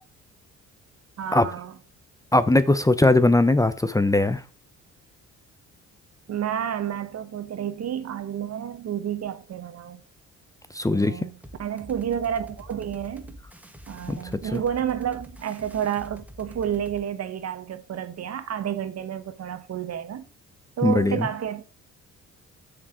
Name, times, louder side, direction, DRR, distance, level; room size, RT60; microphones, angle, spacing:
voice 1, 1.2-1.7 6.3-10.0 10.9-13.4 13.9-20.2 20.8-21.6, right 9 dB, 55° right, 1.3 m, -30 dB
voice 2, 2.3-4.4 10.7-11.3 14.1-14.2 14.5-14.6 20.8-21.3, left 2 dB, 10° left, 0.7 m, -20 dB
sound 1, 11.4-17.0, equal, 5° right, 1.5 m, -45 dB
7.3 x 6.6 x 6.2 m
cardioid pair, 90°, 30 cm